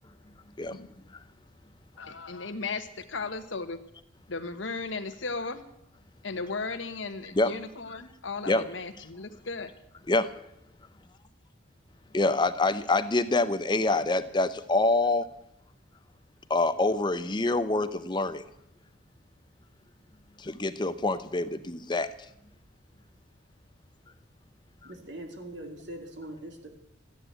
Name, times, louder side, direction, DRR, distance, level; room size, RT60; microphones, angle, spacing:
voice 1, 2.0-3.8 4.3-5.6 6.2-9.7, left 4 dB, 85° left, 9 dB, 1.3 m, -36 dB
voice 2, 12.1-15.3 16.5-18.4 20.4-22.1, left 2 dB, 25° left, 13 dB, 0.6 m, -26 dB
voice 3, 24.8-26.7, right 1 dB, 65° right, 4 dB, 2.4 m, -42 dB
14.0 x 9.9 x 8.0 m, 0.81 s
head